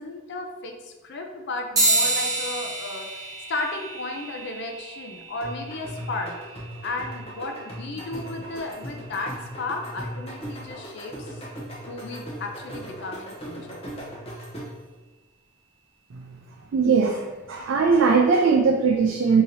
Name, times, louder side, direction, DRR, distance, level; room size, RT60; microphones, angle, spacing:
voice 1, 0.0-6.3 6.8-11.5 11.9-13.9, left 2 dB, 60° left, 3 dB, 0.5 m, -34 dB
sound 1, 1.7-11.6, right 2 dB, 15° right, 1.1 m, -31 dB
sound 2, 5.4-14.9, equal, 30° left, 0.8 m, -38 dB
voice 2, 16.7-19.4, right 5 dB, 65° right, 1 dB, 0.3 m, -20 dB
2.8 x 2.8 x 4.0 m, 1.2 s
head